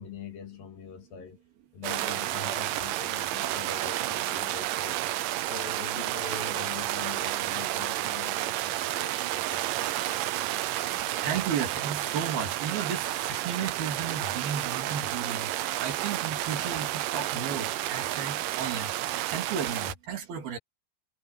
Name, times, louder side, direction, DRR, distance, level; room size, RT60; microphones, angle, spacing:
voice 1, 0.0-1.4 1.7-5.0 5.5-10.5, left 6 dB, 60° left, 3.6 m, -43 dB
sound 1, 1.8-19.9, right 14 dB, 80° right, 2.0 m, -31 dB
voice 2, 11.2-20.6, right 7 dB, 60° right, 4.6 m, -34 dB
omnidirectional pair, 5.0 m